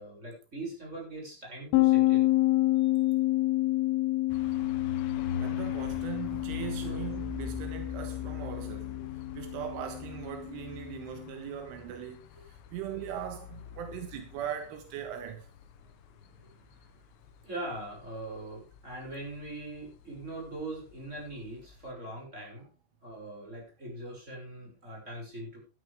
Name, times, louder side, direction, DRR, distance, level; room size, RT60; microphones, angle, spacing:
voice 1, 0.0-2.3 2.8-2.9 6.8-7.1 8.9-9.0 12.7-12.8 13.9-14.0 15.8-17.0 17.4-22.7 23.0-25.6, right 2 dB, 15° right, 6.7 m, -42 dB
sound 1, 1.7-11.2, left 18 dB, 90° left, 3.8 m, -29 dB
sound 2, 4.3-21.9, left 5 dB, 70° left, 3.2 m, -43 dB
voice 2, 5.4-9.0 9.3-15.5, right 9 dB, 80° right, 3.9 m, -40 dB
13.5 x 12.5 x 3.6 m
omnidirectional pair, 5.5 m